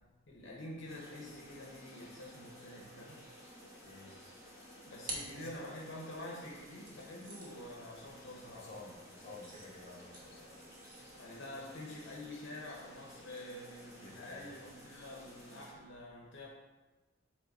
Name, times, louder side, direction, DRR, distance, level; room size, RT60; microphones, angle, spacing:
voice 1, 0.3-3.2 4.8-8.7 11.1-16.5, left 1 dB, 65° left, -3 dB, 0.9 m, -47 dB
sound 1, 0.9-15.7, equal, 15° right, 1.6 m, -55 dB
sound 2, 4.8-6.2 6.8-14.4, right 2 dB, 45° right, 1.3 m, -52 dB
voice 2, 8.5-10.6 13.9-14.5, left 2 dB, 35° left, -4 dB, 1.9 m, -52 dB
7.4 x 3.6 x 4.1 m, 1.2 s
head